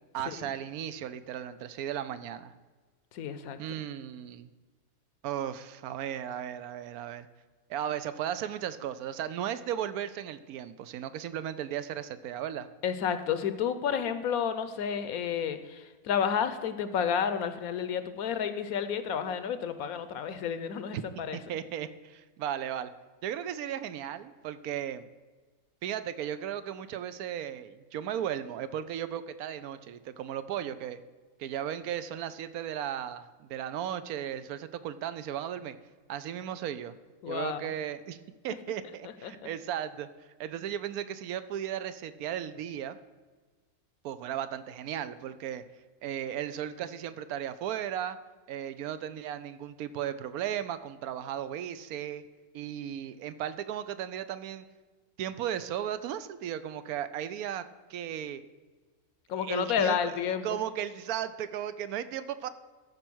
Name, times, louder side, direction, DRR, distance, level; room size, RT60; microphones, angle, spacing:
voice 1, 0.1-2.5 3.6-4.5 5.2-7.3 7.7-12.7 20.9-21.0 21.3-22.9 23.2-25.1 25.8-31.0 31.4-35.8 36.1-36.9 37.3-38.2 38.4-40.1 40.4-43.0 44.0-45.6 46.0-48.2 48.5-52.2 52.5-54.7 55.2-57.6 57.9-58.4 59.4-60.2 60.4-62.5, right 10 dB, 75° right, 13 dB, 1.0 m, -35 dB
voice 2, 3.1-3.6 12.8-21.4 37.2-37.7 39.0-39.5 59.3-60.5, left 7 dB, 75° left, 11 dB, 1.1 m, -31 dB
13.0 x 4.5 x 6.1 m, 1.3 s
omnidirectional pair, 1.6 m